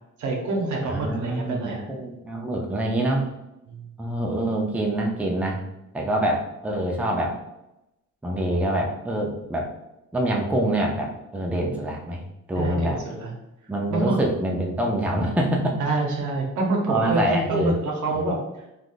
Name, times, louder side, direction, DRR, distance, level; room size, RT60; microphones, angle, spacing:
voice 1, 0.2-1.9 3.7-3.9 12.6-13.3 13.9-14.3 15.8-18.7, right 2 dB, 75° right, 0 dB, 0.9 m, -27 dB
voice 2, 0.8-3.3 4.0-5.6 5.9-7.4 8.2-9.7 10.1-12.2 12.5-13.0 13.7-15.8 16.9-17.7 18.2-18.3, right 1 dB, 5° right, 0 dB, 0.5 m, -25 dB
3.5 x 2.4 x 2.4 m, 0.92 s
cardioid pair, 90°, 30 cm